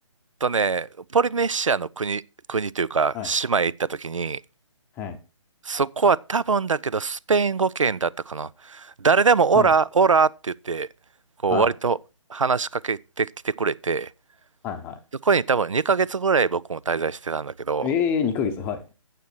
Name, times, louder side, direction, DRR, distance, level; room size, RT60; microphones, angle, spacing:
voice 1, 0.4-2.2 2.5-4.4 5.6-10.9 11.4-12.0 12.3-14.1 15.2-17.9, right 5 dB, 80° right, 0.4 m, -23 dB
voice 2, 14.6-15.0 17.8-18.9, left 7 dB, 10° left, 0.7 m, -26 dB
9.2 x 7.5 x 4.4 m
figure-of-eight pair, 140°, 16 cm